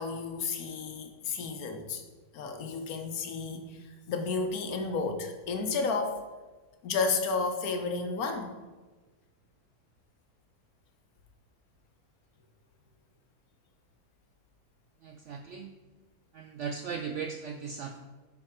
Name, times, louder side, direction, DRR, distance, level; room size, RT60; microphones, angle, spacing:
voice 1, 0.0-2.0 2.3-3.8 4.1-6.2 6.8-8.5, left 4 dB, 65° left, 6 dB, 1.3 m, -32 dB
voice 2, 15.0-15.7 16.3-18.0, right 6 dB, 75° right, 5 dB, 0.7 m, -38 dB
9.6 x 4.4 x 4.5 m, 1.3 s
omnidirectional pair, 1.7 m